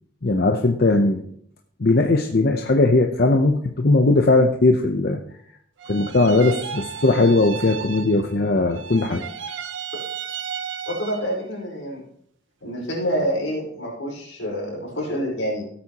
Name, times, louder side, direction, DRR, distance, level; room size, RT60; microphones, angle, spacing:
voice 1, 0.2-1.2 1.8-5.2 5.9-9.2, left 2 dB, 50° left, 4 dB, 0.7 m, -19 dB
sound 1, 5.8-8.4 8.7-11.4, right 7 dB, 70° right, 0.7 m, -34 dB
voice 2, 10.9-12.0 12.6-15.6, equal, 80° left, -3 dB, 4.8 m, -27 dB
16.5 x 8.5 x 2.9 m, 0.67 s
head